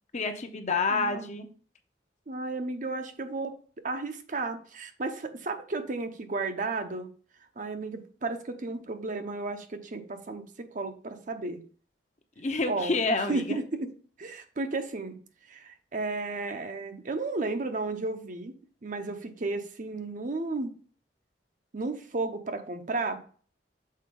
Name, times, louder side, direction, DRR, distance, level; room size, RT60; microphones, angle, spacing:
voice 1, 0.1-1.5 12.4-13.6, left 3 dB, 40° left, 6 dB, 0.8 m, -28 dB
voice 2, 0.9-1.3 2.3-3.5 3.8-7.1 7.6-10.4 10.7-11.6 12.7-12.9 13.3-13.9 14.2-15.2 15.5-18.5 18.8-20.7 21.7-23.2, right 3 dB, 45° right, 7 dB, 0.7 m, -33 dB
6.5 x 4.4 x 3.7 m, 0.42 s
head